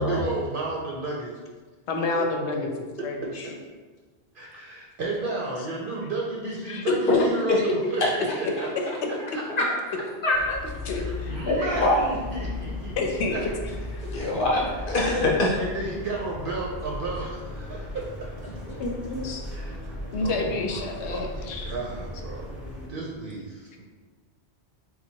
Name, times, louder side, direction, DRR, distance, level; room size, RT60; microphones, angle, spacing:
voice 1, 0.0-1.3 2.1-2.2 4.3-8.7 9.3-9.4 10.8-13.0 13.3-13.5 15.6-18.3 19.5-22.6 22.9-23.8, right 2 dB, 60° right, -3 dB, 0.7 m, -33 dB
voice 2, 1.9-3.5 6.7-7.3 10.9-11.4 11.8-11.9 13.0-13.5 13.9-14.0 15.2-15.3 18.8-19.4 20.1-21.7, left 3 dB, 80° left, 2 dB, 0.9 m, -29 dB
voice 3, 10.2-10.6 11.5-12.0 14.1-15.5, left 2 dB, 50° left, -4 dB, 1.0 m, -23 dB
sound 1, 10.3-22.9, left 1 dB, ahead, 0.9 m, -37 dB
4.0 x 2.2 x 4.4 m, 1.4 s
omnidirectional pair, 1.1 m